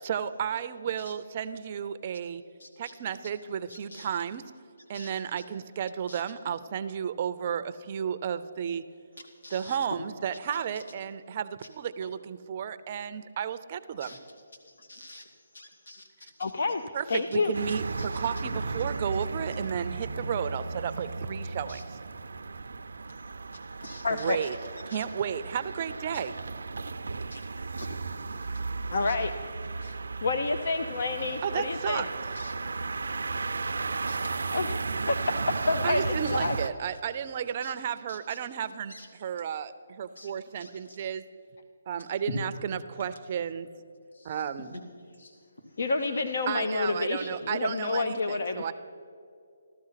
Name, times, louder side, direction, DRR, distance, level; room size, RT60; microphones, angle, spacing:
voice 1, 0.0-2.4 2.8-4.4 4.9-8.8 9.5-14.2 16.9-22.0 24.1-24.6 24.9-26.3 31.4-32.1 35.8-41.2 41.9-43.7 44.2-44.8 46.5-48.7, right 8 dB, 30° right, 12 dB, 0.5 m, -33 dB
voice 2, 3.7-4.2 4.9-5.1 6.1-6.2 9.4-9.8 10.5-10.6 12.0-12.1 14.0-14.2 14.6-15.2 15.5-16.1 16.4-16.5 18.0-18.2 21.7-21.8 23.8-24.4 24.9-25.0 27.3-27.5 27.8-27.9 29.0-29.1 29.8-29.9 32.4-32.5 34.1-34.2 36.3-36.4 37.6-37.7 38.1-38.4 38.9-39.1 40.2-40.3 40.6-41.0 44.6-44.8, left 1 dB, 85° left, 4 dB, 2.5 m, -47 dB
voice 3, 16.4-16.8 17.1-17.5 24.0-24.4 28.9-29.3 30.2-32.0 34.5-35.1 35.7-36.6 44.1-44.4 45.2-45.3 45.8-48.6, left 3 dB, 60° left, 8 dB, 0.8 m, -29 dB
sound 1, 17.5-36.7, right 4 dB, 80° right, 0.5 m, -35 dB
15.5 x 12.5 x 5.8 m, 2.4 s
hypercardioid pair, 165°, 0 cm